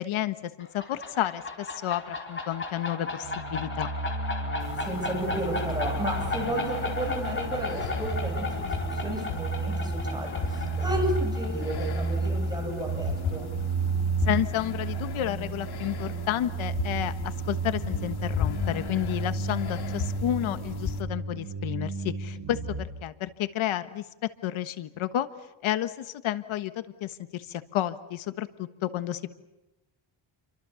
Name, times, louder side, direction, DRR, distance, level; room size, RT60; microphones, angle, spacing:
voice 1, 0.0-3.9 14.2-24.0 24.4-25.3 25.6-29.3, left 12 dB, 90° left, 11 dB, 1.4 m, -31 dB
sound 1, 0.6-14.0, left 2 dB, 25° left, 4.4 m, -36 dB
sound 2, 3.2-22.8, right 3 dB, 75° right, 4.0 m, -32 dB
sound 3, 4.6-21.0, left 6 dB, 55° left, 2.4 m, -37 dB
voice 2, 4.8-13.5, right 1 dB, 10° right, 1 dB, 7.2 m, -33 dB
30.0 x 24.0 x 7.0 m, 0.99 s
cardioid pair, 150°, 47 cm